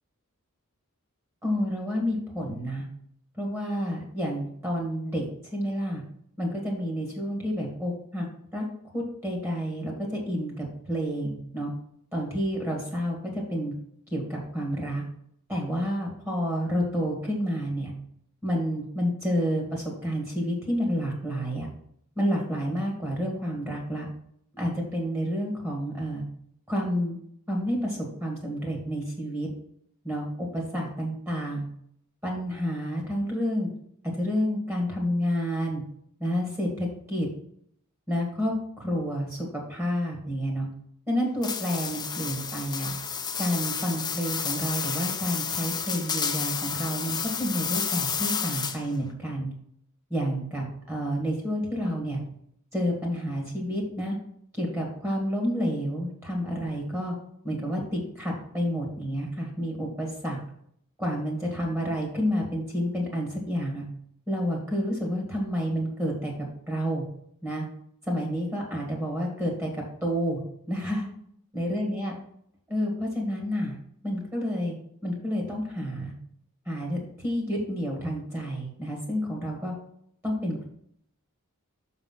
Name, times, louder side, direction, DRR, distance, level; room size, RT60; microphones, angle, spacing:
voice 1, 1.4-2.8 3.3-5.2 5.5-6.0 6.4-8.3 8.5-8.6 8.9-11.7 12.1-13.7 14.1-15.0 15.5-17.9 18.4-21.7 22.2-24.1 24.5-26.2 26.7-27.2 27.5-29.5 30.0-31.7 32.2-33.7 34.1-35.8 36.2-37.3 38.1-40.7 41.1-42.9 43.4-49.5 50.1-52.2 52.7-54.2 54.5-57.1 57.4-60.4 61.0-63.8 64.3-66.3 66.7-67.0 67.4-67.6 68.0-69.7 70.0-70.4 70.7-71.0 71.5-72.1 72.7-73.8 74.0-74.7 75.0-76.1 76.6-79.7 80.2-80.7, equal, 10° right, 0 dB, 1.7 m, -29 dB
sound 1, 41.4-49.0, left 6 dB, 20° left, 0.5 m, -31 dB
6.8 x 4.1 x 5.6 m, 0.69 s
head